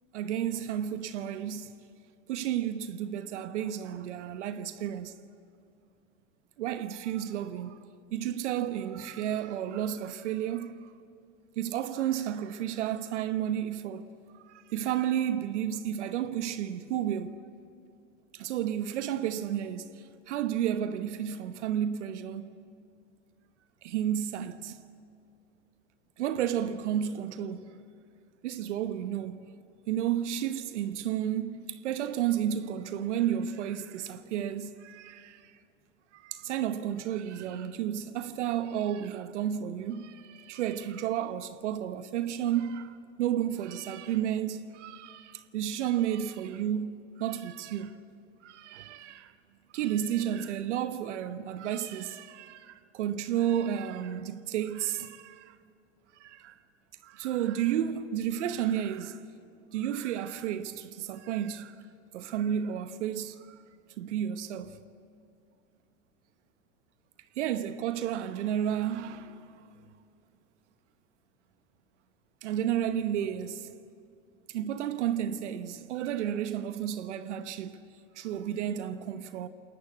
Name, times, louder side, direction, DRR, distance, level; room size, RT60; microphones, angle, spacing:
voice 1, 0.1-1.7 2.3-5.1 6.6-7.8 8.1-10.9 11.6-14.1 14.4-17.4 18.3-22.5 23.8-24.8 26.2-27.7 28.4-29.4 29.9-35.4 36.1-48.0 48.4-49.3 49.7-55.5 56.2-56.5 57.0-59.2 59.7-61.7 62.1-63.6 64.0-64.8 67.4-69.6 72.4-73.7 74.5-77.8 78.2-79.5, right 10 dB, 75° right, 1.1 m, -32 dB
28.0 x 21.5 x 8.3 m
hypercardioid pair, 90°, 36 cm